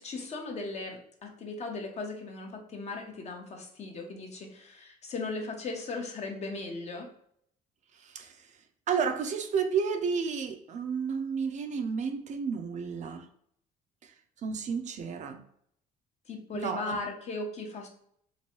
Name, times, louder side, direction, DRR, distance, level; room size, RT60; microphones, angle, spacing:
voice 1, 0.0-7.1 16.3-17.9, left 3 dB, 40° left, 2 dB, 0.7 m, -37 dB
voice 2, 7.9-8.5 8.9-13.3 14.0-14.1 14.4-15.4 16.5-17.0, right 6 dB, 45° right, 6 dB, 0.4 m, -32 dB
3.0 x 2.6 x 2.8 m, 0.68 s
cardioid pair, 110°, 17 cm